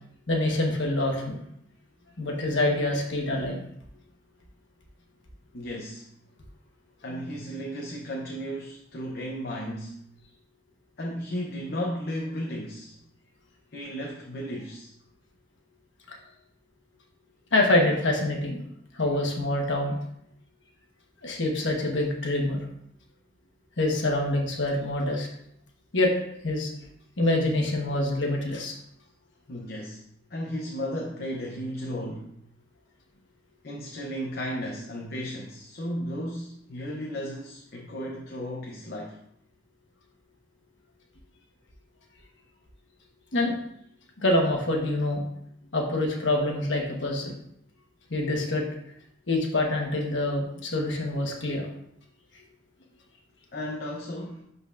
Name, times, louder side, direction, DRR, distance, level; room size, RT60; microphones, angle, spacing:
voice 1, 0.3-1.4 2.2-3.6 16.1-16.2 17.5-18.6 18.9-20.0 21.2-22.6 23.8-25.3 25.9-26.1 26.4-26.7 27.2-28.7 43.3-43.5 44.2-45.2 45.7-47.3 48.1-48.6 49.3-51.7, left 1 dB, 70° left, 1 dB, 1.3 m, -25 dB
voice 2, 5.5-6.1 7.0-10.0 11.0-13.0 13.7-14.9 29.5-30.0 30.3-32.3 33.6-39.2 53.5-54.4, equal, 50° left, -1 dB, 0.8 m, -34 dB
11.0 x 4.1 x 2.5 m, 0.73 s
head